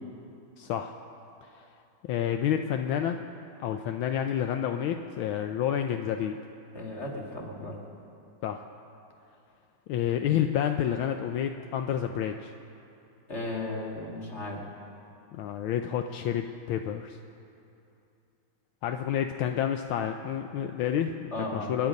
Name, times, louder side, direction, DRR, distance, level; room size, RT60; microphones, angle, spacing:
voice 1, 0.6-0.9 1.4-1.6 2.0-3.2 3.6-6.4 8.4-8.6 9.9-12.5 15.3-17.2 18.8-21.9, left 9 dB, 80° left, 6 dB, 1.4 m, -29 dB
voice 2, 6.7-7.8 13.3-14.6 21.3-21.7, left 2 dB, 35° left, -2 dB, 2.5 m, -35 dB
28.5 x 9.7 x 5.3 m, 2.7 s
omnidirectional pair, 2.3 m